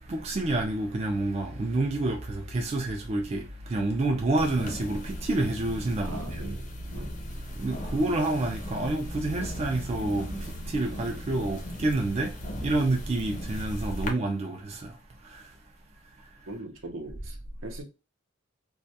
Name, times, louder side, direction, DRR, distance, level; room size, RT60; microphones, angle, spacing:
voice 1, 0.1-6.6 7.5-15.0 15.2-15.5, right 2 dB, 30° right, 0.3 m, -29 dB
sound 1, 4.4-14.1, equal, 35° left, 0.5 m, -37 dB
voice 2, 6.0-6.7 6.9-7.2 16.5-17.4 17.6-17.8, right 2 dB, 75° right, 0.6 m, -40 dB
2.2 x 2.2 x 2.6 m
head